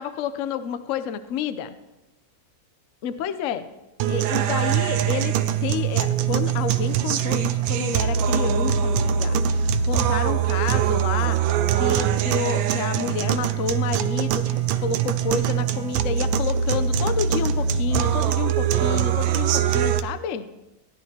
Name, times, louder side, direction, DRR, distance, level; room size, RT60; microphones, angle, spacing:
voice 1, 0.0-1.8 3.0-3.7 4.1-11.4 11.7-20.4, left 7 dB, 70° left, 11 dB, 0.7 m, -30 dB
sound 1, 4.0-20.0, right 8 dB, 85° right, 1.4 m, -23 dB
16.5 x 11.0 x 2.8 m, 1.0 s
omnidirectional pair, 2.0 m